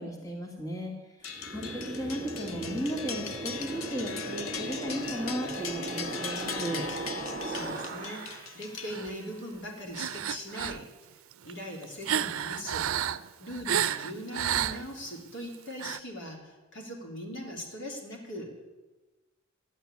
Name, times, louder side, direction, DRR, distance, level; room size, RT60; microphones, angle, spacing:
voice 1, 0.0-6.9, equal, 15° left, 0 dB, 2.1 m, -36 dB
sound 1, 1.2-9.4, left 6 dB, 85° left, 1.2 m, -40 dB
sound 2, 1.3-8.6, right 2 dB, 40° right, 1.7 m, -38 dB
voice 2, 7.4-10.9 11.4-12.9 13.4-18.7, equal, 65° left, 1 dB, 3.3 m, -40 dB
sound 3, 7.5-8.4 8.9-9.2 9.9-10.8 11.3-15.1 15.7-16.0, right 9 dB, 85° right, 0.5 m, -32 dB
12.5 x 9.1 x 9.8 m, 1.2 s
head